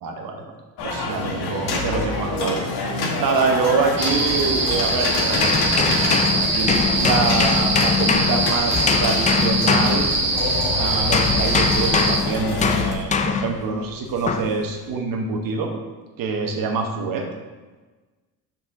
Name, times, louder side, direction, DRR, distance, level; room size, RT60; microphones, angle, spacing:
voice 1, 0.0-0.5 0.8-2.6 3.2-5.5 6.3-10.1 10.7-15.7 16.2-17.3, right 4 dB, 50° right, 2 dB, 1.1 m, -25 dB
sound 1, 0.8-12.9, left 3 dB, 60° left, 1.3 m, -27 dB
sound 2, 4.0-12.2, right 2 dB, 25° right, 1.0 m, -23 dB
sound 3, 5.3-10.6 11.1-13.6 14.3-14.6, left 5 dB, 20° left, 0.3 m, -22 dB
5.9 x 4.4 x 3.7 m, 1.3 s
supercardioid pair, 75°, 44 cm